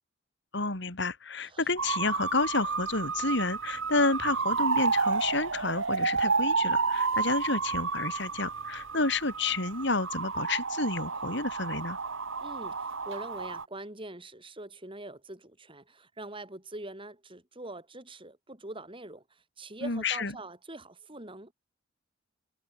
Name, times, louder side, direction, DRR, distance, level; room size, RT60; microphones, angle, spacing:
voice 1, 0.5-12.0 19.8-20.3, left 3 dB, 60° left, 3.7 m, -30 dB
sound 1, 1.8-13.6, right 4 dB, 80° right, 2.2 m, -31 dB
voice 2, 12.4-21.5, right 2 dB, 25° right, 6.6 m, -43 dB
head